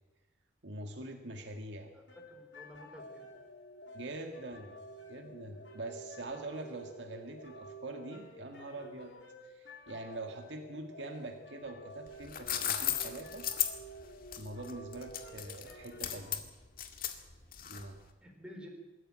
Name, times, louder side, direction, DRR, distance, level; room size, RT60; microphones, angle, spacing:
voice 1, 0.6-1.9 3.9-4.8 5.1-9.1 9.4-13.5 14.3-16.5 17.6-18.0, right 2 dB, 65° right, 3 dB, 2.0 m, -44 dB
voice 2, 1.9-3.3 17.6-17.7 18.2-18.7, left 1 dB, 5° right, 1 dB, 3.9 m, -51 dB
sound 1, 2.1-16.3, right 1 dB, 65° left, 3.3 m, -51 dB
sound 2, 12.1-18.0, left 10 dB, 45° left, 2.0 m, -36 dB
23.0 x 14.0 x 8.9 m, 1.2 s
head